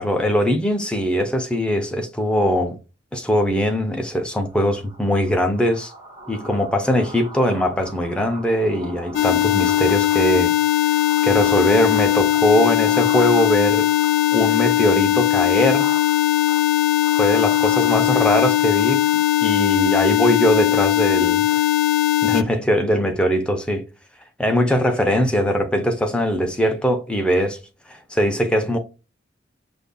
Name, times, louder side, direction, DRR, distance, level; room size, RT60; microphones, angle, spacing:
voice 1, 0.0-2.8 3.1-5.9 6.3-10.5 11.2-13.9 14.3-15.9 17.2-21.6 22.2-23.8 24.4-27.6 27.9-28.8, equal, 5° left, 0.6 m, -21 dB
sound 1, 4.5-19.8, right 1 dB, 20° right, 1.8 m, -39 dB
sound 2, 9.1-22.4, left 13 dB, 80° left, 0.4 m, -19 dB
5.1 x 2.5 x 2.2 m
head